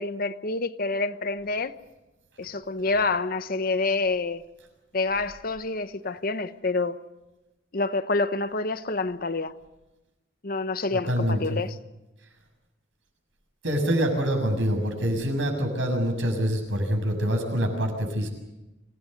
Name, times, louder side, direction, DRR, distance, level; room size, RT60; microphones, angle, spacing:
voice 1, 0.0-1.7 2.4-4.4 4.9-7.0 7.7-9.5 10.4-11.7, left 3 dB, 50° left, 1.0 m, -27 dB
voice 2, 10.9-11.6 13.6-18.3, equal, 75° right, 6.8 m, -25 dB
26.0 x 18.0 x 7.9 m
head